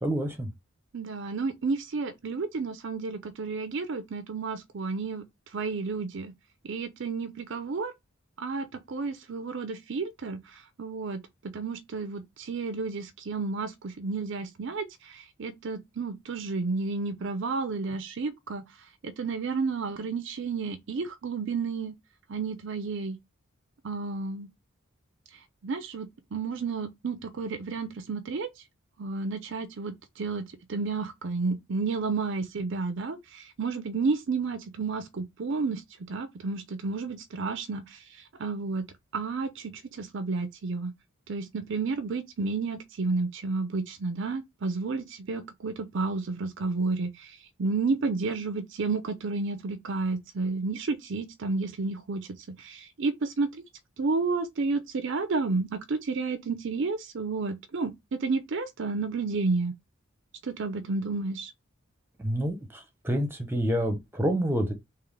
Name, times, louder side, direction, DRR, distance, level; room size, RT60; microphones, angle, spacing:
voice 1, 0.0-0.5 62.2-64.7, equal, 10° right, 0.8 m, -28 dB
voice 2, 0.9-5.2 5.5-6.3 6.6-7.9 8.4-10.4 10.8-11.2 11.5-18.6 19.0-21.9 22.3-23.2 23.8-24.5 25.6-28.5 29.0-35.8 36.1-38.0 38.4-38.8 39.1-40.9 41.3-47.3 47.6-52.3 52.6-53.6 54.0-59.7 60.4-61.5, right 4 dB, 60° right, 0.5 m, -31 dB
3.7 x 2.9 x 3.2 m
head